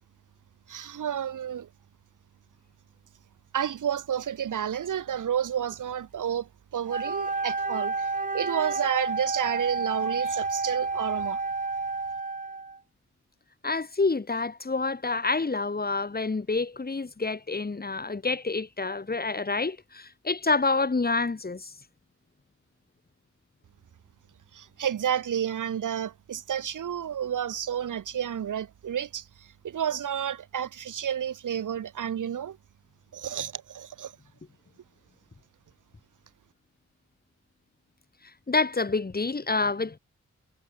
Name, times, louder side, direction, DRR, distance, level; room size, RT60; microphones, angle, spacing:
voice 1, 0.7-1.7 3.5-8.1 8.3-11.4 24.5-32.6 33.1-34.1, right 9 dB, 80° right, 1.4 m, -31 dB
Wind instrument woodwind instrument, 6.9-12.8, right 3 dB, 25° right, 1.2 m, -30 dB
voice 2, 13.6-21.7 38.5-40.0, left 3 dB, 30° left, 1.5 m, -28 dB
cardioid pair, 55°, 31 cm